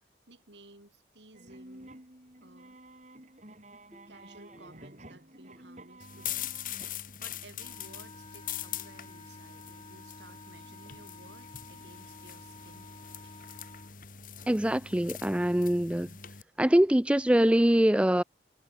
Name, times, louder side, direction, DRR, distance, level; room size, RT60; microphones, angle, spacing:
voice 1, 0.3-2.0 2.4-2.8 4.1-6.6 7.2-12.9 13.2-13.3, right 2 dB, 80° right, 7.1 m, -55 dB
sound 1, 1.3-7.0, right 1 dB, 40° right, 4.9 m, -51 dB
sound 2, 6.0-16.4, left 10 dB, 50° left, 3.1 m, -42 dB
Wind instrument woodwind instrument, 7.6-14.0, left 3 dB, 30° left, 6.9 m, -52 dB
voice 2, 14.5-16.2 16.6-18.2, right 1 dB, 5° right, 0.4 m, -23 dB
head